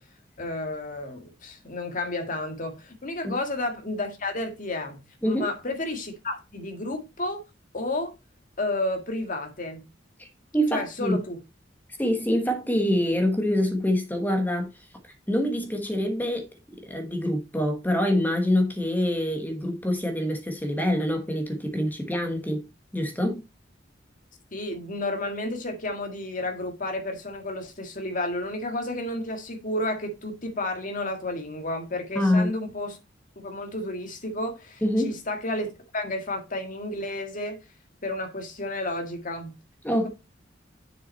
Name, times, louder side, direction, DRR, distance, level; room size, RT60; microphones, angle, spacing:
voice 1, 0.4-7.4 7.7-8.1 8.6-9.8 10.7-11.4 24.5-33.0 33.4-37.6 38.0-39.6 40.0-40.1, left 1 dB, 45° left, 1.7 m, -31 dB
voice 2, 10.5-11.2 12.0-14.9 15.3-16.5 16.9-22.6 22.9-23.4 32.1-32.5 34.8-35.2 39.8-40.1, left 1 dB, 10° left, 1.1 m, -25 dB
7.1 x 5.6 x 4.2 m
head